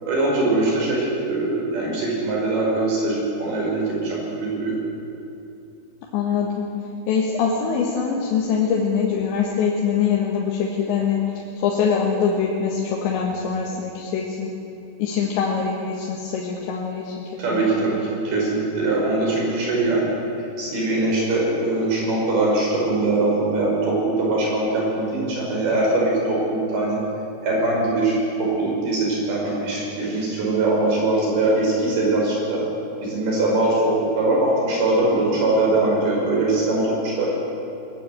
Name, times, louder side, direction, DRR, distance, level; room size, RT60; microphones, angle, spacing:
voice 1, 0.0-4.8 17.4-20.1 20.6-27.0 27.4-32.6 33.0-37.3, right 2 dB, 60° right, -3 dB, 7.0 m, -22 dB
voice 2, 6.1-6.7 7.1-14.5 15.0-17.8, left 6 dB, 85° left, -2 dB, 3.9 m, -23 dB
21.0 x 14.5 x 9.4 m, 2.8 s
omnidirectional pair, 5.1 m